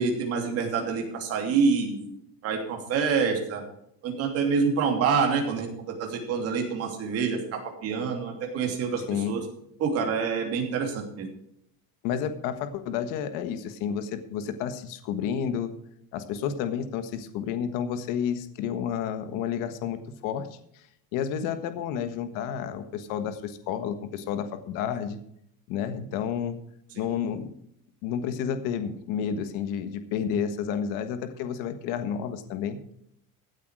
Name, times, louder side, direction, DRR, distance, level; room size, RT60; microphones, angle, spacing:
voice 1, 0.0-2.1 2.4-3.6 4.0-9.4 9.8-11.3 27.2-27.3, right 5 dB, 35° right, 3 dB, 2.9 m, -27 dB
voice 2, 12.0-15.7 16.1-20.5 21.1-25.2 25.7-26.6 27.0-27.5 28.0-32.8, left 8 dB, 50° left, 10 dB, 1.5 m, -30 dB
15.5 x 8.4 x 4.8 m, 0.72 s
cardioid pair, 175°, 43 cm